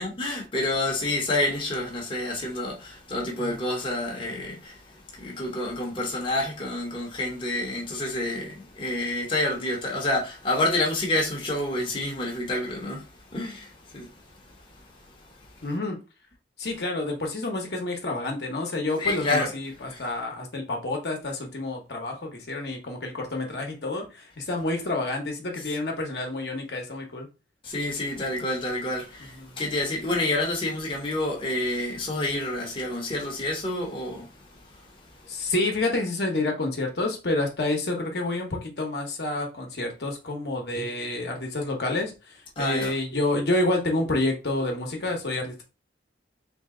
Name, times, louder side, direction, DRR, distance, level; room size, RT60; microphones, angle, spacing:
voice 1, 0.0-4.8 5.1-13.0 13.3-14.1 19.0-19.5 19.9-20.0 27.6-34.3 42.6-42.9, left 2 dB, 30° left, 0.8 m, -28 dB
voice 2, 15.6-16.0 16.6-27.3 29.2-29.6 35.3-45.6, left 2 dB, 60° left, 0.9 m, -29 dB
3.2 x 2.8 x 3.6 m
head